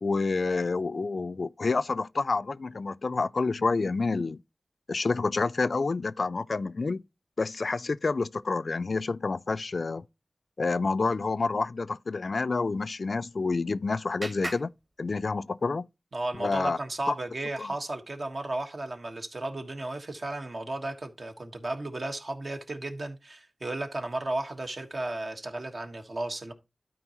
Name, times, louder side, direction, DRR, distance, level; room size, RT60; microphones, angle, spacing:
voice 1, 0.0-4.4 4.9-7.0 7.4-10.0 10.6-14.7 15.0-15.9 16.4-16.8 17.1-17.2 17.6-17.7, left 3 dB, 70° left, 0.3 m, -28 dB
Clapping, 13.1-15.7, right 1 dB, 40° right, 1.9 m, -43 dB
voice 2, 16.1-26.5, right 2 dB, 65° right, 1.5 m, -34 dB
12.5 x 4.6 x 3.0 m
wide cardioid pair, 50°, 0 cm